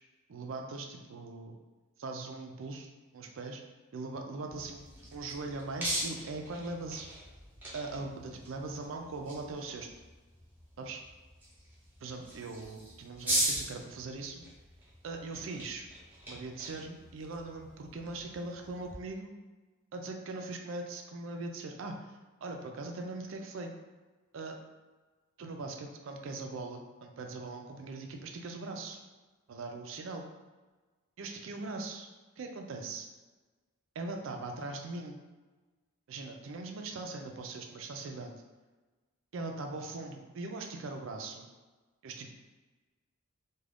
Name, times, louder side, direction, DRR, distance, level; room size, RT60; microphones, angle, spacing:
voice 1, 0.3-1.5 2.0-3.6 3.9-7.1 7.7-9.9 10.8-11.0 12.0-14.4 15.0-15.9 16.3-19.3 19.9-22.1 22.4-23.7 24.3-24.6 25.4-29.0 29.5-30.3 31.2-32.1 32.4-33.1 34.0-35.2 36.1-38.4 39.3-41.5 42.0-42.3, right 3 dB, 65° right, 3 dB, 0.4 m, -40 dB
sound 1, 4.5-19.0, right 1 dB, 10° right, 0.7 m, -40 dB
2.4 x 2.3 x 3.3 m, 1.3 s
head